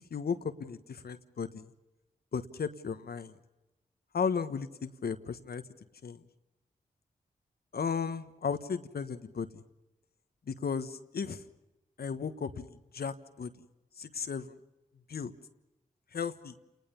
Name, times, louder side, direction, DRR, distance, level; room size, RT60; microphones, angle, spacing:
voice 1, 0.1-1.7 2.3-3.3 4.1-5.6 6.0-6.2 7.7-9.6 10.5-11.4 12.0-13.5 14.0-14.5 15.1-15.3 16.1-16.5, left 6 dB, 75° left, 10 dB, 1.4 m, -35 dB
29.0 x 20.0 x 7.1 m, 0.99 s
cardioid pair, 40°, 16 cm